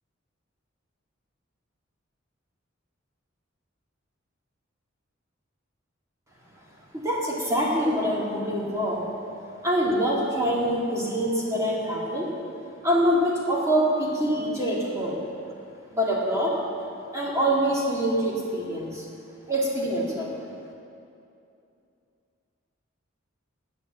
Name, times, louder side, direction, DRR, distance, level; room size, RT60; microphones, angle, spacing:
voice 1, 6.9-9.0 9.6-12.3 12.8-15.2 15.9-16.6 17.1-19.1 19.5-20.3, equal, 15° right, -4 dB, 2.3 m, -25 dB
10.5 x 8.4 x 7.7 m, 2.6 s
head